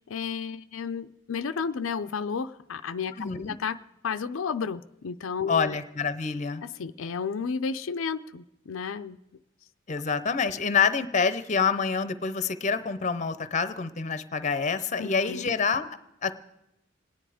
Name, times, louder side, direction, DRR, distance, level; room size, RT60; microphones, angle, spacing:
voice 1, 0.1-3.8 4.0-5.8 6.6-9.2 15.0-15.4, left 6 dB, 80° left, 9 dB, 0.5 m, -32 dB
voice 2, 3.2-3.6 5.5-6.6 9.9-16.4, left 5 dB, 35° left, 13 dB, 0.7 m, -27 dB
27.0 x 10.0 x 5.0 m, 0.88 s
head